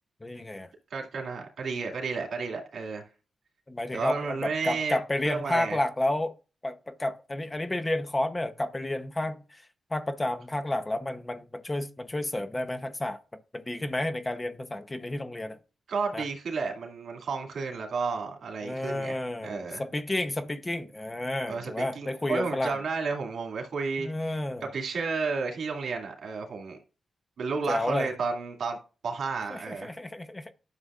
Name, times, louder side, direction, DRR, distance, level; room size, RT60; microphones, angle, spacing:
voice 1, 0.2-0.7 3.7-6.3 6.6-9.6 9.9-13.2 13.5-15.6 16.1-16.3 18.6-22.8 24.0-24.7 27.7-28.1 29.5-30.5, left 1 dB, 20° left, 0.8 m, -31 dB
voice 2, 0.9-3.0 3.9-5.0 5.2-5.8 15.9-19.2 19.4-19.8 21.5-24.1 24.6-26.8 27.4-28.8 29.0-29.9, right 4 dB, 75° right, 2.3 m, -32 dB
11.5 x 6.9 x 2.4 m
cardioid pair, 90°, 0 cm